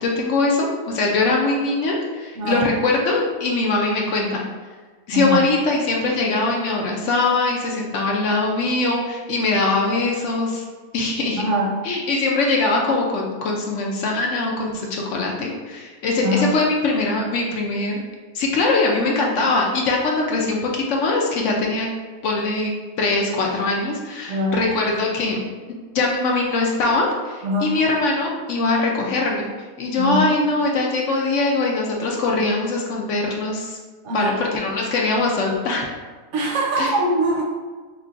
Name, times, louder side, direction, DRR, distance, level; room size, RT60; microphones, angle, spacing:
voice 1, 0.0-4.4 5.1-10.6 10.9-11.4 11.8-17.9 18.3-21.9 22.2-25.4 25.9-29.5 29.8-33.8 34.1-35.8 36.8-36.9, left 3 dB, 65° left, -1 dB, 0.8 m, -22 dB
voice 2, 5.1-5.5 11.4-11.7 16.2-16.5 24.3-24.6 27.4-27.7 30.0-30.2 34.0-34.3 36.3-37.4, right 1 dB, 65° right, -1 dB, 0.8 m, -22 dB
3.6 x 3.2 x 2.4 m, 1.4 s
omnidirectional pair, 1.5 m